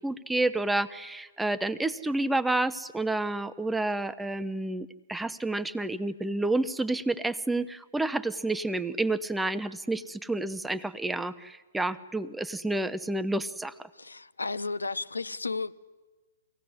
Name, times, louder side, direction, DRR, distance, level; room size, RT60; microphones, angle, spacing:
voice 1, 0.0-13.9, right 2 dB, 5° right, 13 dB, 0.7 m, -30 dB
voice 2, 13.9-15.7, left 3 dB, 80° left, 14 dB, 0.9 m, -33 dB
24.5 x 17.5 x 9.7 m, 1.3 s
figure-of-eight pair, 120°, 0 cm